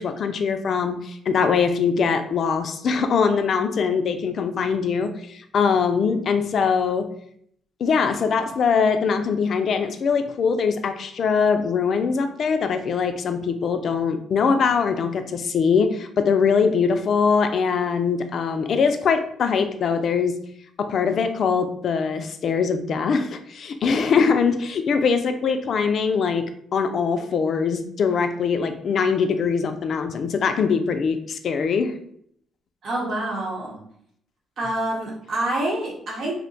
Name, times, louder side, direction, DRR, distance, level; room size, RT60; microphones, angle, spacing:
voice 1, 0.0-7.1 7.8-20.5 20.8-32.0, left 5 dB, 60° left, 7 dB, 0.3 m, -22 dB
voice 2, 32.8-33.8 34.6-36.3, right 1 dB, 60° right, -3 dB, 1.0 m, -27 dB
2.6 x 2.1 x 3.9 m, 0.67 s
cardioid pair, 90°, 0 cm